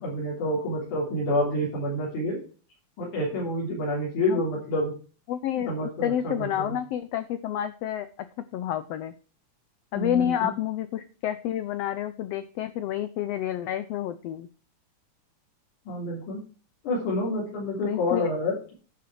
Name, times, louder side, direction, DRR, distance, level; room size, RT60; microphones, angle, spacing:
voice 1, 0.0-2.4 3.0-4.9 5.5-6.6 9.9-10.5 15.9-16.4 16.8-18.7, left 1 dB, 75° left, -5 dB, 4.8 m, -28 dB
voice 2, 5.3-9.1 9.9-14.5 17.8-18.3, left 11 dB, 90° left, 12 dB, 1.4 m, -29 dB
10.5 x 5.9 x 6.2 m, 0.38 s
omnidirectional pair, 3.6 m